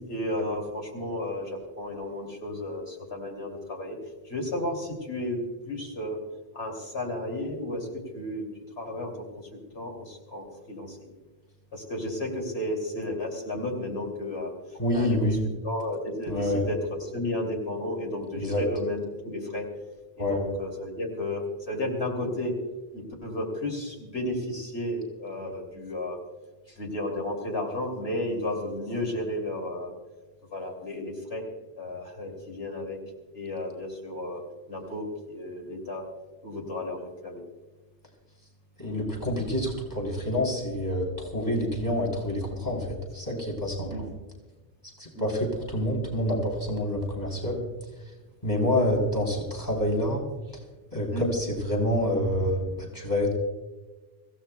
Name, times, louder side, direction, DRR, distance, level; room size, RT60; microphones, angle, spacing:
voice 1, 0.0-4.0 4.3-5.4 5.7-6.2 6.5-7.9 8.1-8.4 8.8-9.2 9.7-11.1 11.7-14.5 14.9-15.2 15.6-19.6 20.2-22.5 22.9-26.2 26.8-29.9 30.5-31.5 31.8-33.0 33.3-34.4 34.7-36.0 36.4-37.4 43.9-44.1 45.1-45.3 48.8-48.9 51.1-51.3, left 1 dB, 75° left, 0 dB, 3.0 m, -33 dB
voice 2, 14.8-15.4 16.3-16.6 18.4-18.6 20.2-20.4 38.8-44.1 45.0-47.7 48.4-50.2 50.5-50.6 50.9-53.3, left 1 dB, 20° left, -1 dB, 3.6 m, -27 dB
25.5 x 16.0 x 2.3 m, 1.2 s
omnidirectional pair, 1.1 m